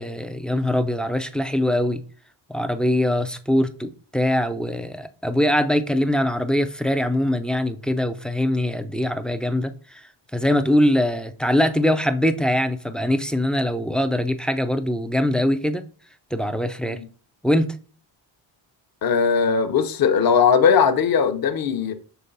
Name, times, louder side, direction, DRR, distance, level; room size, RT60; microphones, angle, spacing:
voice 1, 0.0-2.0 2.5-10.0 10.3-15.8 16.3-17.0 17.4-17.7, left 1 dB, ahead, 0.3 m, -22 dB
voice 2, 19.0-21.9, left 6 dB, 45° left, 0.8 m, -19 dB
6.8 x 3.8 x 3.9 m
cardioid pair, 120°, 50 cm